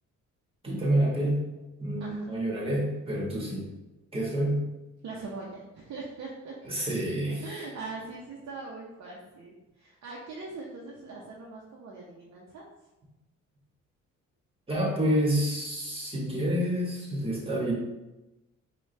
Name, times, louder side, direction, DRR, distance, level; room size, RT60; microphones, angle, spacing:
voice 1, 0.6-1.4 1.8-3.7 4.1-4.6 6.6-7.4 14.7-17.7, right 1 dB, 20° right, -3 dB, 1.4 m, -28 dB
voice 2, 5.0-6.6 7.4-12.6, right 3 dB, 60° right, -3 dB, 0.8 m, -41 dB
4.7 x 2.4 x 3.2 m, 1.0 s
cardioid pair, 90°, 30 cm